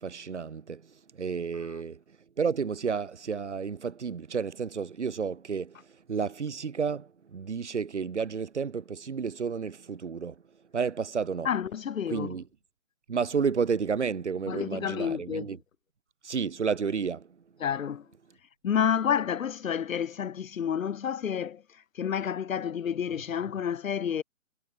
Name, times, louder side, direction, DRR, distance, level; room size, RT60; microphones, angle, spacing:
voice 1, 0.0-10.4 10.7-11.5 12.1-12.5 13.1-15.6 16.2-17.4, right 6 dB, 60° right, 2.8 m, -31 dB
voice 2, 11.4-12.3 14.5-15.5 17.6-18.0 18.6-21.6 22.0-24.2, left 8 dB, 85° left, 0.8 m, -29 dB
hypercardioid pair, 175°, 39 cm